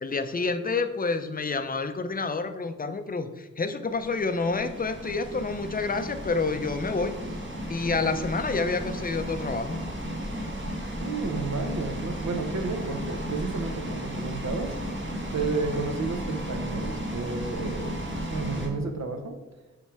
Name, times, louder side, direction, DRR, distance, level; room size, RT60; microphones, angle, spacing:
voice 1, 0.0-7.2 7.7-9.8, left 4 dB, 30° left, 9 dB, 0.5 m, -28 dB
sound 1, 3.9-18.7, equal, 40° right, 1.3 m, -34 dB
voice 2, 11.0-14.8 15.3-18.0 18.3-19.4, right 4 dB, 65° right, 6 dB, 0.9 m, -31 dB
7.3 x 3.3 x 4.7 m, 1.1 s
wide cardioid pair, 95°, 30 cm